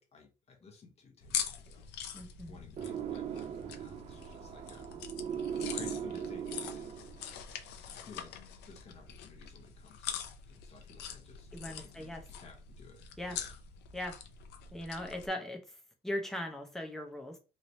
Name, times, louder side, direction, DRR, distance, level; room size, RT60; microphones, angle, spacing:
voice 1, 0.0-1.9 2.5-4.9 5.5-7.0 7.9-8.4 8.6-13.5, left 4 dB, 40° left, 1.0 m, -55 dB
sound 1, 1.2-15.3, left 8 dB, 85° left, 0.5 m, -43 dB
voice 2, 2.1-2.6 11.5-12.3 13.2-13.4 13.9-14.2 14.7-17.4, left 1 dB, ahead, 0.8 m, -39 dB
sound 2, 2.8-7.4, right 8 dB, 40° right, 0.4 m, -39 dB
3.2 x 2.9 x 2.6 m
cardioid pair, 110°, 17 cm